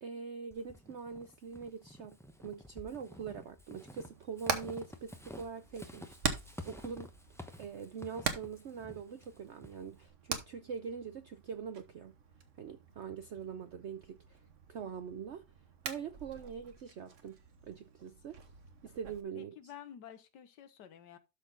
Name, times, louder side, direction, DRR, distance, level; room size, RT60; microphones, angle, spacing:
voice 1, 0.0-2.2 2.4-6.4 6.7-7.1 7.6-12.1 12.6-14.4 14.7-15.4 15.8-18.4 18.8-19.6, right 6 dB, 70° right, 0.6 m, -43 dB
Walk footsteps / Squeak, 0.5-10.1, left 1 dB, 5° left, 0.4 m, -51 dB
Hammer, 4.0-19.2, right 5 dB, 50° right, 1.4 m, -43 dB
voice 2, 19.3-21.2, left 9 dB, 75° left, 1.6 m, -51 dB
12.5 x 4.2 x 3.8 m
omnidirectional pair, 1.9 m